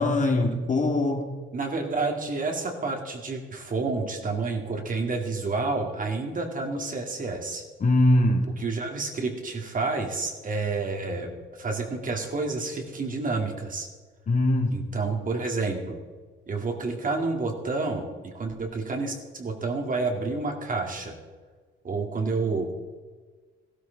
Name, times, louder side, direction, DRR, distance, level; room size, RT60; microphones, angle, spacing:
voice 1, 0.0-1.3 7.8-8.5 14.3-14.8, left 1 dB, 40° left, 3 dB, 1.9 m, -22 dB
voice 2, 1.5-7.6 8.6-13.9 14.7-16.0 16.5-21.1 21.8-22.7, right 3 dB, 45° right, 3 dB, 2.4 m, -29 dB
15.0 x 13.0 x 4.0 m, 1.4 s
cardioid pair, 90°, 20 cm